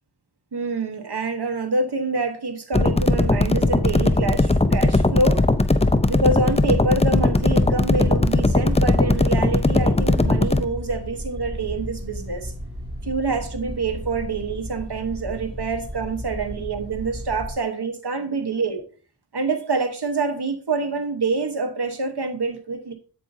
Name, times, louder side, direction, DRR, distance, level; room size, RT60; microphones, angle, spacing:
voice 1, 0.5-5.5 6.1-12.5 13.0-18.8 19.3-22.9, right 3 dB, 70° right, 1.2 m, -26 dB
sound 1, 2.7-10.6, left 2 dB, 15° left, 0.5 m, -19 dB
sound 2, 7.3-17.5, equal, 15° right, 2.4 m, -34 dB
8.2 x 7.8 x 2.7 m
wide cardioid pair, 50°, 41 cm